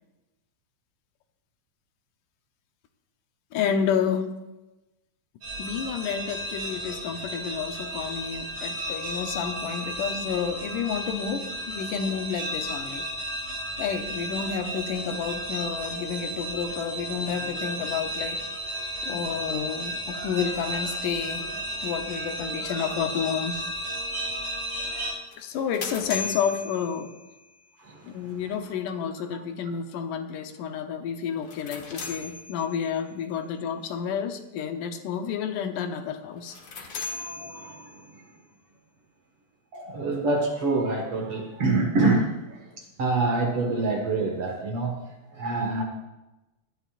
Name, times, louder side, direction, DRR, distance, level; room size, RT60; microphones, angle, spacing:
voice 1, 3.5-4.4 5.6-13.1 13.8-18.4 19.0-21.5 21.8-23.6 25.4-27.1 28.0-36.9, left 7 dB, 80° left, 6 dB, 2.5 m, -30 dB
sound 1, 5.4-25.1, equal, 85° right, 6.0 m, -33 dB
sound 2, 25.3-27.6 31.3-33.0 36.4-38.2, left 4 dB, 45° left, 1.7 m, -38 dB
voice 2, 37.1-38.0 39.7-42.6 43.0-45.0 45.3-45.8, right 3 dB, 50° right, 1 dB, 2.4 m, -26 dB
19.5 x 12.5 x 2.5 m, 1.0 s
omnidirectional pair, 3.7 m